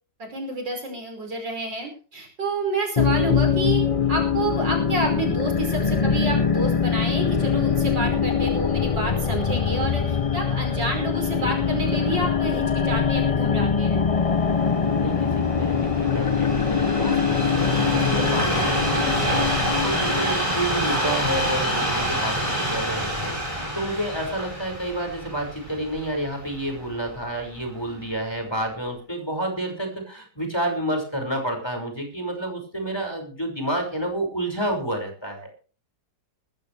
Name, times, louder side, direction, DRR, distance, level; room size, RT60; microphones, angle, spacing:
voice 1, 0.3-3.8 4.1-14.0 17.7-18.0, right 2 dB, 85° right, 3 dB, 6.0 m, -29 dB
sound 1, 3.0-20.4, left 6 dB, 40° left, 0.5 m, -23 dB
Train, 14.1-27.3 28.0-28.1, right 1 dB, 15° right, 6.5 m, -27 dB
voice 2, 14.9-35.5, right 1 dB, 15° left, 3 dB, 5.8 m, -30 dB
20.5 x 14.0 x 3.4 m, 0.38 s
omnidirectional pair, 1.9 m